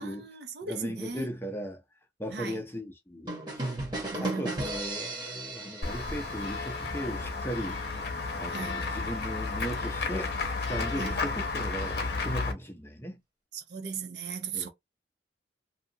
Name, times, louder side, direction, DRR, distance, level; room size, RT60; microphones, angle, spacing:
voice 1, 0.0-1.3 2.3-2.6 4.1-4.8 8.5-8.9 10.9-11.3 13.5-14.7, right 5 dB, 70° right, 0.6 m, -38 dB
voice 2, 0.6-1.8 2.2-3.3 3.6-3.7 4.2-7.8 8.4-10.4 10.7-13.2 14.5-14.7, equal, 15° left, 0.6 m, -37 dB
sound 1, 3.3-7.0, right 2 dB, 25° right, 1.1 m, -36 dB
Run / Walk footsteps / Bell, 5.8-12.5, left 3 dB, 60° left, 0.7 m, -32 dB
2.7 x 2.4 x 2.7 m
head